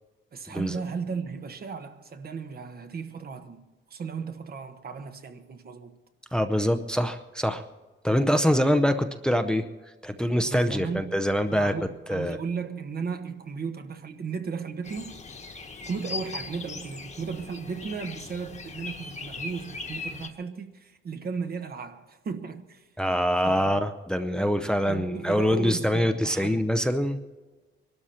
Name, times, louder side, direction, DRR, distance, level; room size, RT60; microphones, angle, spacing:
voice 1, 0.3-6.0 10.4-11.2 11.5-15.2 15.9-22.9 23.4-23.8 24.9-26.6, right 5 dB, 50° right, 1.2 m, -35 dB
voice 2, 6.3-7.6 8.0-9.6 10.0-11.7 12.1-12.4 23.0-27.2, equal, 5° left, 0.6 m, -24 dB
sound 1, 14.8-20.3, left 4 dB, 35° left, 1.3 m, -39 dB
23.0 x 12.5 x 4.4 m
cardioid pair, 130°, 21 cm